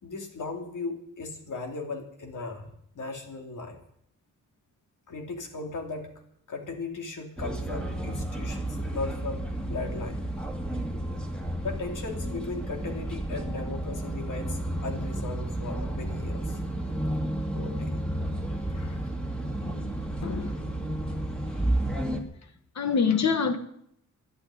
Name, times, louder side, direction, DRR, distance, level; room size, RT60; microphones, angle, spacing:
voice 1, 0.0-3.8 5.1-6.1 6.5-10.2 11.6-16.6 17.5-18.0 18.7-19.0, left 3 dB, 85° left, 3.0 m, -37 dB
sound 1, 7.4-22.2, right 1 dB, 5° left, 2.7 m, -32 dB
voice 2, 20.2-20.6 22.8-23.6, left 5 dB, 60° left, 1.7 m, -25 dB
12.0 x 11.5 x 9.9 m
wide cardioid pair, 120°, 31 cm